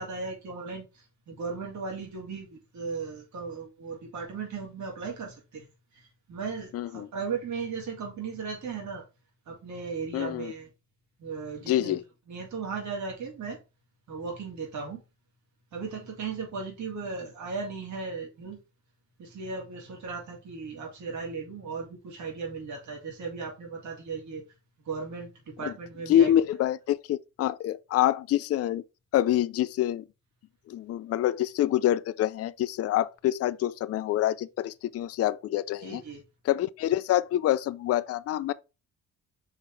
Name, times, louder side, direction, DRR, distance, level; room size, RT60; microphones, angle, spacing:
voice 1, 0.0-5.6 6.0-9.0 9.5-10.7 11.2-12.0 12.3-13.6 14.1-15.0 15.7-18.6 19.2-24.4 24.8-26.3 35.8-36.2, right 5 dB, 70° right, 2.8 m, -36 dB
voice 2, 6.7-7.1 10.1-10.5 11.7-12.0 25.6-25.7 26.1-28.8 29.1-30.0 30.7-36.0 36.4-38.5, left 12 dB, 55° left, 0.4 m, -26 dB
5.5 x 3.7 x 4.6 m
cardioid pair, 90°, 30 cm